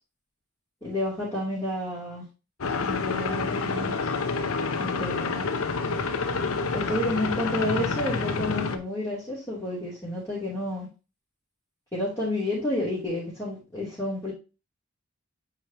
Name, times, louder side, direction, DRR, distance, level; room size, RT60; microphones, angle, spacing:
voice 1, 0.8-2.2 2.8-4.0 4.8-5.5 6.7-10.9 11.9-14.3, left 1 dB, 15° left, -11 dB, 3.1 m, -30 dB
sound 1, 2.6-8.8, left 4 dB, 85° left, 0.8 m, -28 dB
8.8 x 5.0 x 3.0 m, 0.31 s
head